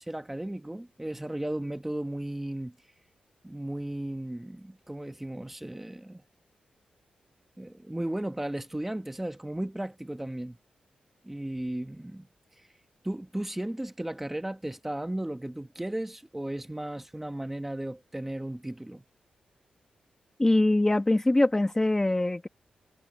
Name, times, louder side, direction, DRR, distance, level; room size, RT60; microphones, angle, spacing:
voice 1, 0.0-2.7 3.4-6.2 7.6-10.6 11.2-12.3 12.5-12.7 13.0-19.0, right 1 dB, 10° right, 1.1 m, -35 dB
voice 2, 20.4-22.5, left 2 dB, 15° left, 1.4 m, -23 dB
wide cardioid pair, 105°, 3 cm